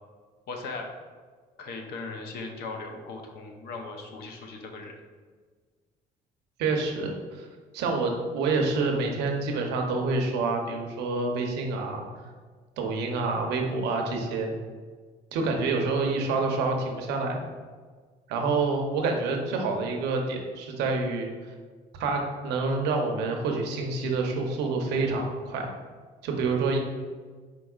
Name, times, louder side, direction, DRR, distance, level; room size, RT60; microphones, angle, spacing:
voice 1, 0.5-0.9 1.6-4.9, left 3 dB, 70° left, 3 dB, 0.7 m, -38 dB
voice 2, 6.6-7.5 7.7-12.1 12.8-14.5 15.3-17.4 18.3-21.3 22.0-25.7 26.2-26.8, right 3 dB, 85° right, 2 dB, 0.7 m, -27 dB
4.7 x 4.1 x 2.4 m, 1.5 s
cardioid pair, 110°, 17 cm